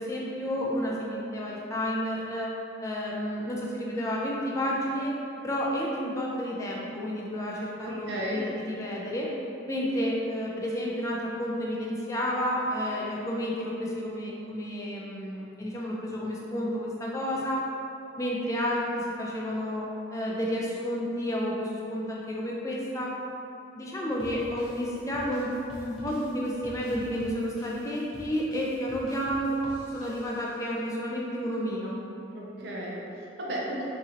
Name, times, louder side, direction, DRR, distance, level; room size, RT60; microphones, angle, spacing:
voice 1, 0.0-2.5 2.8-5.1 5.4-9.3 9.7-17.6 18.2-23.1 23.7-25.5 25.8-32.0, equal, 15° left, -4 dB, 0.3 m, -31 dB
voice 2, 7.8-8.4 32.3-34.0, right 1 dB, 60° right, -4 dB, 0.6 m, -34 dB
sound 1, 24.2-30.7, equal, 5° right, 0.7 m, -48 dB
3.7 x 2.9 x 2.8 m, 2.8 s
head